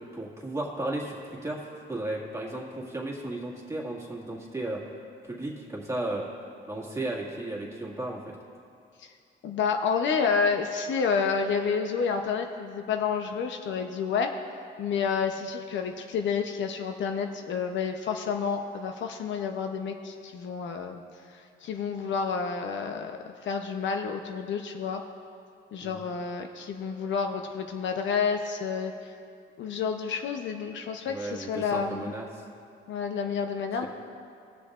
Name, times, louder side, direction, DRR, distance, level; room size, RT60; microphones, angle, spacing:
voice 1, 0.1-1.6 1.9-4.8 5.2-6.2 6.7-8.3 25.8-26.0 31.1-32.4, right 2 dB, 15° right, -3 dB, 1.9 m, -34 dB
voice 2, 9.4-14.3 14.8-21.0 21.6-23.1 23.4-25.0 25.7-28.9 29.6-32.1 32.9-33.9, left 6 dB, 70° left, 5 dB, 0.7 m, -29 dB
20.5 x 6.9 x 2.5 m, 2.5 s
cardioid pair, 90°, 20 cm